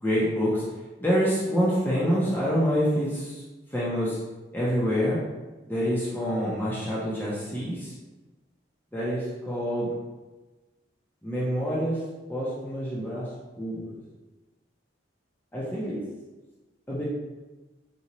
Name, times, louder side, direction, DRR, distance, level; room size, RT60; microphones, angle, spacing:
voice 1, 0.0-0.6 1.0-3.4 3.7-4.2 4.5-5.2 5.7-7.9 8.9-10.0 11.2-12.0 12.3-13.3 13.6-14.0 15.5-16.0 16.9-17.0, equal, 10° left, -8 dB, 0.6 m, -26 dB
3.9 x 2.2 x 2.9 m, 1.2 s
head